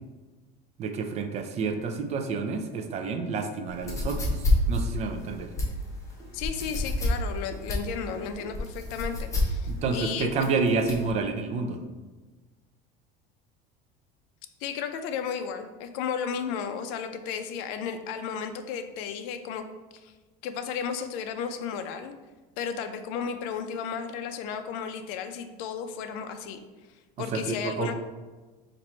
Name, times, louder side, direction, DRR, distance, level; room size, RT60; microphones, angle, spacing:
voice 1, 0.8-5.5 9.7-11.8 27.3-27.9, right 4 dB, 30° right, 6 dB, 0.4 m, -29 dB
sound 1, 3.8-11.1, left 1 dB, 15° left, 0.8 m, -29 dB
voice 2, 6.3-10.5 14.6-19.6 20.0-20.1 20.4-22.1 22.6-26.6 27.2-27.9, left 7 dB, 70° left, 8 dB, 0.5 m, -34 dB
4.3 x 2.6 x 4.3 m, 1.2 s
cardioid pair, 150°, 21 cm